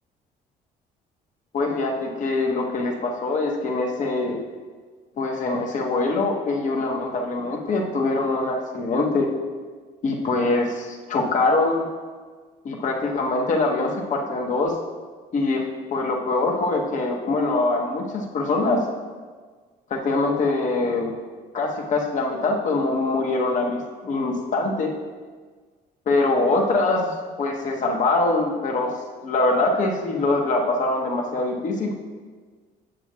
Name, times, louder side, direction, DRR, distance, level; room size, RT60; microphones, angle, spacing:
voice 1, 1.5-4.4 5.2-9.3 10.0-11.9 12.6-14.8 15.3-18.9 19.9-21.1 21.5-24.9 26.1-28.9 29.2-31.9, left 2 dB, 50° left, 1 dB, 1.0 m, -23 dB
8.9 x 7.0 x 2.4 m, 1.5 s
cardioid pair, 110°, 17 cm